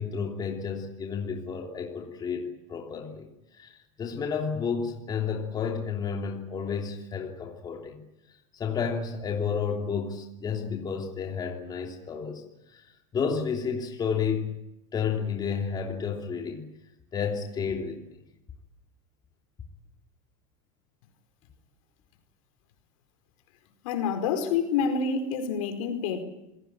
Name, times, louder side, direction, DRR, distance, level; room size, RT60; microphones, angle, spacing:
voice 1, 0.0-8.0 8.5-12.9 13.1-14.6 14.9-16.6 17.1-18.2, left 6 dB, 20° left, 2 dB, 3.1 m, -31 dB
voice 2, 23.8-26.2, left 5 dB, 70° left, 7 dB, 4.8 m, -27 dB
26.5 x 18.0 x 8.9 m, 0.89 s
supercardioid pair, 135°, 18 cm